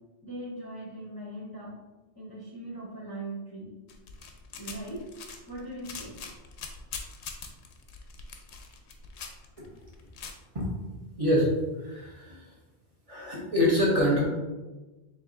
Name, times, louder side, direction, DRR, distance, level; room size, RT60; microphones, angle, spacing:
voice 1, 0.2-1.7 2.2-3.7 4.6-5.1 5.5-6.2, right 1 dB, 25° left, -6 dB, 0.6 m, -40 dB
sound 1, 3.9-10.3, left 5 dB, 75° left, 0.9 m, -42 dB
voice 2, 11.2-11.5 11.8-12.5 13.1-14.2, equal, 30° right, -6 dB, 1.1 m, -25 dB
4.7 x 3.4 x 2.5 m, 1.2 s
omnidirectional pair, 1.2 m